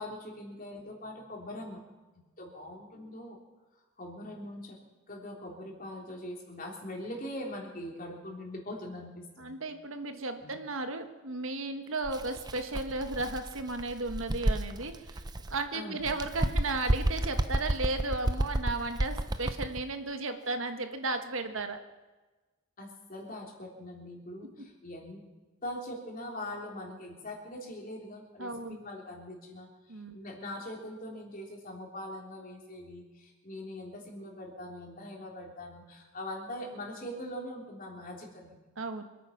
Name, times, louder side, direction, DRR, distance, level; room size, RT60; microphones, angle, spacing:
voice 1, 0.0-1.8 2.4-3.4 4.0-4.8 5.1-9.6 10.4-10.6 15.7-16.1 22.8-25.2 25.6-38.6, left 1 dB, 40° left, 0 dB, 3.4 m, -42 dB
voice 2, 9.4-15.2 15.5-21.8 28.4-28.8 29.9-30.1 38.8-39.0, right 3 dB, 70° right, 7 dB, 1.5 m, -34 dB
Bird, 12.0-15.6 16.0-19.8, right 1 dB, 20° right, 0.6 m, -31 dB
26.0 x 9.2 x 5.9 m, 1.2 s
head